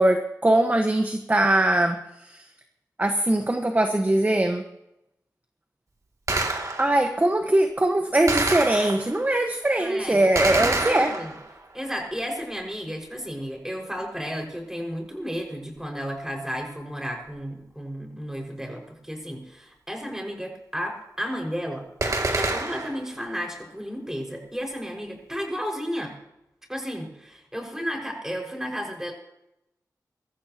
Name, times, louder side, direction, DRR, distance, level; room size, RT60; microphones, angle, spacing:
voice 1, 0.0-2.4 3.0-4.6 6.8-11.2, right 1 dB, 25° right, 5 dB, 1.4 m, -21 dB
Gunshot gunfire, 6.3-7.1 8.3-9.3 10.3-11.6 22.0-23.1, right 2 dB, 50° right, 2.6 m, -27 dB
voice 2, 9.8-10.2 10.5-11.3 11.7-21.9 22.4-26.1 26.7-29.1, equal, 5° right, 1 dB, 5.6 m, -33 dB
23.0 x 14.5 x 3.0 m, 0.85 s
wide cardioid pair, 80°, 7 cm